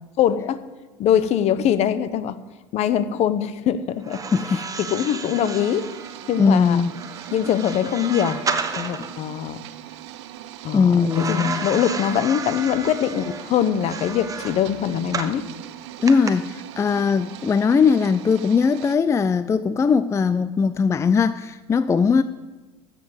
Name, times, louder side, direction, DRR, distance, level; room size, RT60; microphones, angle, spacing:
voice 1, 0.2-0.6 1.0-2.4 2.7-4.2 4.8-5.9 6.3-6.8 7.3-8.4 8.7-9.6 10.6-15.5, left 9 dB, 50° left, 14 dB, 0.9 m, -22 dB
sound 1, 4.0-9.2 11.1-15.4 16.1-16.3, right 5 dB, 25° right, 1.2 m, -32 dB
voice 2, 4.3-4.6 6.4-6.9 10.7-11.7 16.0-22.2, left 5 dB, 20° left, 14 dB, 0.4 m, -19 dB
sound 2, 5.3-19.0, right 13 dB, 80° right, 0.8 m, -40 dB
13.0 x 7.4 x 8.0 m, 1.2 s
supercardioid pair, 100°, 14 cm